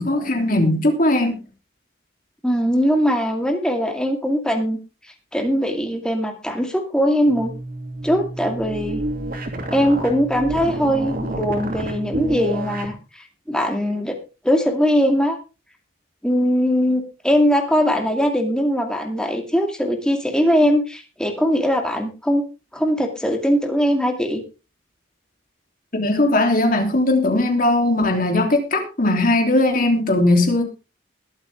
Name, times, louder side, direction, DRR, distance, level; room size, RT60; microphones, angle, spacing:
voice 1, 0.0-1.4 25.9-30.6, left 2 dB, 45° left, 3.2 m, -18 dB
voice 2, 2.4-4.8 5.3-7.5 8.0-9.0 9.7-14.2 14.4-15.4 16.2-22.4 22.7-24.4, equal, 5° left, 2.4 m, -20 dB
sound 1, 7.2-13.0, right 1 dB, 45° right, 2.8 m, -29 dB
21.0 x 8.0 x 3.6 m
head